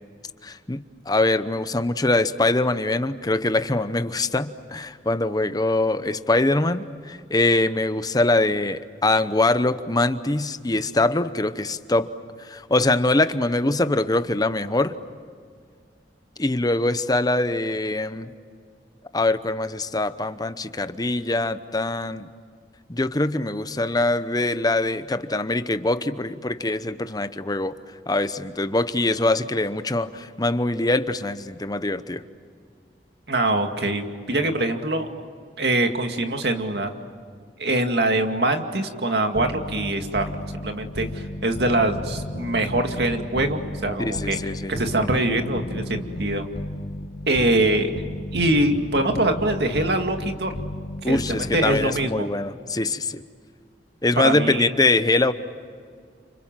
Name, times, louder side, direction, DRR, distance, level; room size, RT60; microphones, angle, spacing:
voice 1, 0.4-12.1 12.4-14.9 16.4-18.3 19.1-22.3 22.9-27.7 28.1-32.2 44.0-44.7 51.0-53.2 54.0-55.3, left 2 dB, 20° left, 12 dB, 0.9 m, -23 dB
voice 2, 33.3-35.3 35.6-36.9 37.6-44.4 44.7-46.5 47.3-47.9 48.3-50.5 51.0-52.3 54.2-54.7, right 2 dB, 65° right, 5 dB, 2.2 m, -23 dB
sound 1, 39.3-52.3, left 1 dB, 60° left, 1.3 m, -33 dB
29.5 x 26.5 x 7.6 m, 2.1 s
head